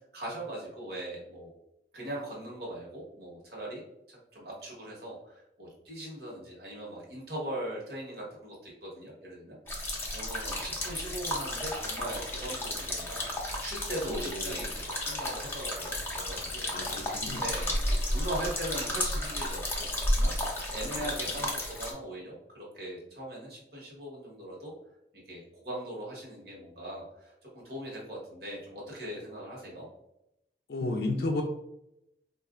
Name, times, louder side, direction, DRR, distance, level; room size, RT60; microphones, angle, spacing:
voice 1, 0.1-1.5 1.9-3.8 4.1-9.6 10.1-13.3 13.6-16.7 17.3-20.3 20.7-24.7 25.3-29.9, right 1 dB, 65° right, -4 dB, 1.3 m, -40 dB
sound 1, 9.7-21.9, left 1 dB, 10° left, 0.6 m, -32 dB
voice 2, 14.1-14.6 16.7-17.5 30.7-31.4, left 2 dB, 60° left, 1 dB, 0.4 m, -32 dB
4.2 x 2.5 x 2.4 m, 0.83 s
head